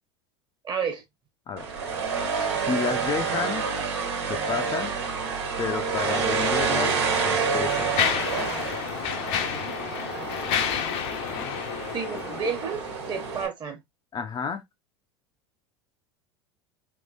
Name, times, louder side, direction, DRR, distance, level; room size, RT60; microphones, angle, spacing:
voice 1, 0.6-1.0 11.9-12.8 13.1-13.8, right 6 dB, 30° right, 1.3 m, -30 dB
sound 1, 1.6-13.5, right 5 dB, 75° right, 1.4 m, -28 dB
voice 2, 2.7-3.6 4.3-5.0 5.6-6.9 7.2-7.9 11.3-11.6 14.1-14.6, left 6 dB, 30° left, 0.6 m, -31 dB
Mechanisms, 6.3-6.5 7.2-12.9, left 8 dB, 60° left, 0.8 m, -30 dB
3.7 x 2.9 x 2.5 m
hypercardioid pair, 85°, 14 cm